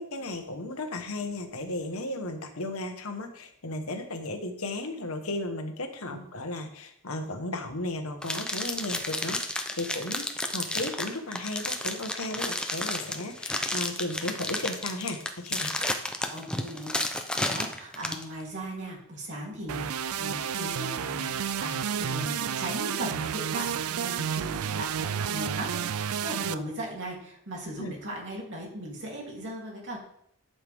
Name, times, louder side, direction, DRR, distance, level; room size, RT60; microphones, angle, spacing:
voice 1, 0.0-10.3 10.5-15.7 27.8-27.9, left 2 dB, 70° left, 5 dB, 1.4 m, -35 dB
sound 1, 8.2-18.2, left 1 dB, 5° left, 0.7 m, -31 dB
voice 2, 16.3-30.0, right 1 dB, 55° right, -3 dB, 3.2 m, -38 dB
sound 2, 19.7-26.5, right 8 dB, 75° right, 0.4 m, -31 dB
11.5 x 7.0 x 3.6 m, 0.71 s
head